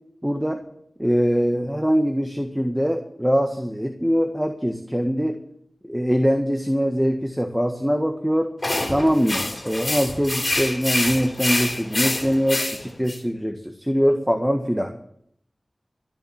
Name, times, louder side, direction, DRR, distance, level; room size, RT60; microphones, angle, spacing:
voice 1, 0.2-0.6 1.0-5.3 5.9-8.5 8.9-13.5 13.8-14.9, equal, 5° right, 5 dB, 1.6 m, -22 dB
sound 1, 8.6-13.2, left 2 dB, 35° left, 3.5 m, -26 dB
14.0 x 7.5 x 10.0 m, 0.69 s
wide cardioid pair, 50°, 0 cm